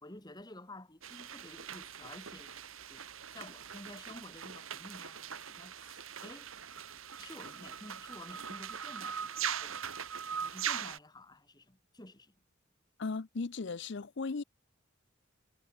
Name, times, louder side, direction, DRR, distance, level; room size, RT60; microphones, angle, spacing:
voice 1, 0.0-2.5 2.9-3.1 3.3-6.5 7.2-9.8 10.3-12.3, left 1 dB, 20° left, 2.6 m, -51 dB
sound 1, 1.0-11.0, right 8 dB, 85° right, 2.1 m, -41 dB
voice 2, 13.0-14.4, left 4 dB, 60° left, 0.6 m, -36 dB
head